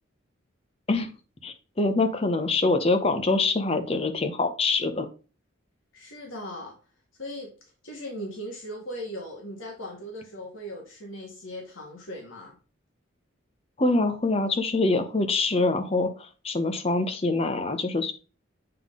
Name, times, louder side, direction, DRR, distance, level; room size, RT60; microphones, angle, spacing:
voice 1, 1.4-5.1 13.8-18.1, left 3 dB, 30° left, 7 dB, 0.7 m, -25 dB
voice 2, 5.9-6.7 7.2-7.5 7.8-12.6, equal, 70° left, -1 dB, 1.6 m, -38 dB
7.7 x 3.7 x 3.7 m, 0.35 s
head